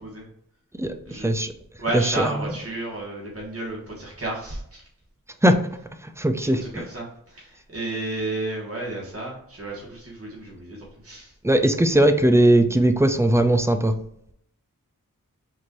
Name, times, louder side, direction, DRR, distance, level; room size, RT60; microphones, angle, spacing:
voice 1, 0.8-1.5 1.9-2.5 5.4-5.6 6.0-6.6 11.4-13.9, right 1 dB, 10° right, 7 dB, 0.4 m, -19 dB
voice 2, 1.8-4.8 6.4-11.3, right 2 dB, 45° right, -4 dB, 1.4 m, -32 dB
4.5 x 2.5 x 3.0 m, 0.70 s
wide cardioid pair, 45°, 34 cm